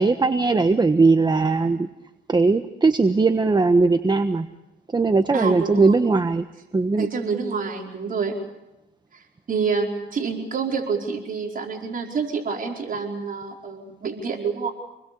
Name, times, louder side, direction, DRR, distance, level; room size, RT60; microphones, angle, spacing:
voice 1, 0.0-1.9 2.3-4.5 4.9-6.5 6.7-7.1, right 3 dB, 20° right, 9 dB, 1.2 m, -19 dB
voice 2, 5.3-6.0 7.0-8.4 9.1-14.7, right 5 dB, 45° right, 1 dB, 5.0 m, -27 dB
28.5 x 21.0 x 7.0 m, 0.97 s
cardioid pair, 90°, 20 cm